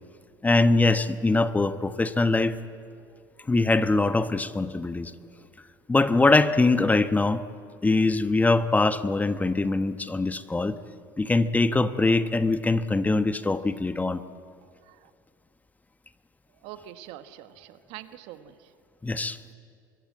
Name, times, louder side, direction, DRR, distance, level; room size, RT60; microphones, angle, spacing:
voice 1, 0.4-2.6 3.5-5.1 5.9-7.4 7.8-10.8 11.2-14.2 19.0-19.4, left 3 dB, 15° left, 11 dB, 1.1 m, -23 dB
voice 2, 14.6-15.1 16.5-18.7, right 12 dB, 65° right, 10 dB, 1.4 m, -45 dB
24.5 x 22.5 x 8.6 m, 2.3 s
hypercardioid pair, 75°, 11 cm